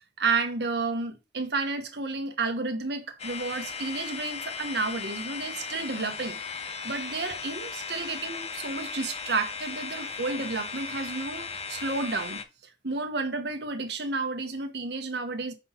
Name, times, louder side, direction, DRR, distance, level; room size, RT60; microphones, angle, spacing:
voice 1, 0.2-12.4 12.8-15.5, right 3 dB, 60° right, 1.2 m, -31 dB
sound 1, 3.2-12.4, left 5 dB, 35° left, 0.7 m, -37 dB
5.1 x 3.9 x 5.7 m
head